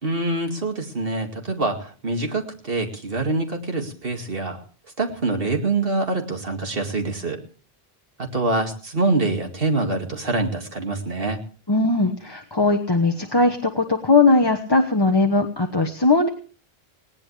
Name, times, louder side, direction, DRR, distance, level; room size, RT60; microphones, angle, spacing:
voice 1, 0.0-4.6 5.0-7.4 8.3-11.4, right 2 dB, 65° right, 3 dB, 2.5 m, -25 dB
voice 2, 11.7-16.3, left 3 dB, 25° left, 4 dB, 1.3 m, -19 dB
19.5 x 18.0 x 3.4 m, 0.41 s
omnidirectional pair, 1.0 m